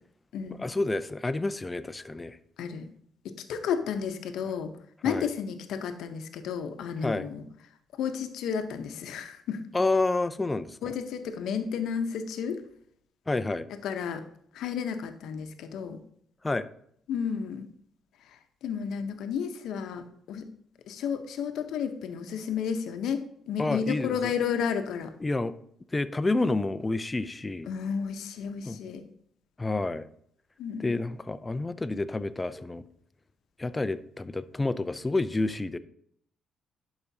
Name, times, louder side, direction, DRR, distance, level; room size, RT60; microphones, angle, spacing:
voice 1, 0.6-2.4 5.0-5.3 7.0-7.3 9.7-10.9 13.3-13.7 16.4-16.7 23.6-24.3 25.2-25.5 25.9-27.7 28.7-28.8 29.6-30.1 30.8-32.8 33.6-35.8, left 2 dB, 20° left, 13 dB, 0.4 m, -29 dB
voice 2, 2.6-2.9 3.2-4.7 5.0-7.4 8.0-9.6 10.8-12.6 13.8-14.2 14.5-16.0 17.1-17.7 18.6-20.4 20.9-23.2 23.5-25.1 27.7-29.0 30.6-30.9, left 7 dB, 80° left, 7 dB, 0.7 m, -32 dB
11.5 x 4.9 x 2.7 m, 0.67 s
cardioid pair, 90°, 0 cm